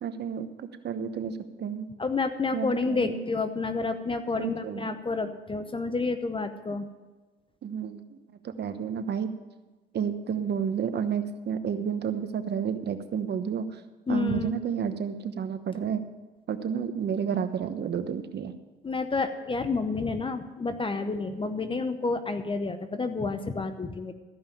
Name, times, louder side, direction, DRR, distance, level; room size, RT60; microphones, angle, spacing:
voice 1, 0.0-1.9 2.5-3.2 4.4-4.9 7.6-8.2 8.4-9.3 9.9-13.8 14.1-16.0 16.5-18.5, right 7 dB, 55° right, 10 dB, 1.1 m, -31 dB
voice 2, 2.0-6.9 14.1-14.6 18.8-24.1, left 3 dB, 25° left, 9 dB, 0.8 m, -29 dB
14.5 x 5.5 x 9.1 m, 1.2 s
cardioid pair, 90°, 20 cm